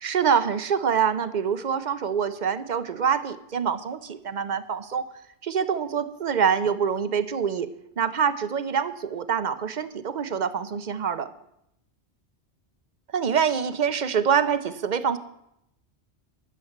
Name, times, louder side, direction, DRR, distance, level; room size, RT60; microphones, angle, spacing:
voice 1, 0.0-5.0 5.4-7.7 8.0-11.3 13.1-15.2, right 7 dB, 50° right, 13 dB, 0.7 m, -25 dB
11.5 x 6.8 x 7.2 m, 0.80 s
omnidirectional pair, 1.2 m